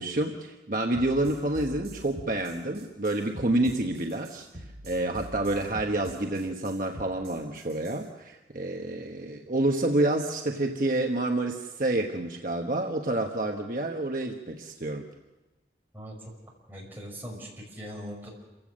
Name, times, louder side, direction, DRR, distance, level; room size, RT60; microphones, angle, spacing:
voice 1, 0.0-4.5 4.8-15.1, right 2 dB, 50° right, 2 dB, 1.1 m, -28 dB
sound 1, 0.9-8.0, right 1 dB, 70° right, 6.0 m, -44 dB
voice 2, 15.9-16.3 16.7-18.3, equal, 10° right, -3 dB, 5.9 m, -41 dB
28.0 x 16.0 x 6.4 m, 1.1 s
head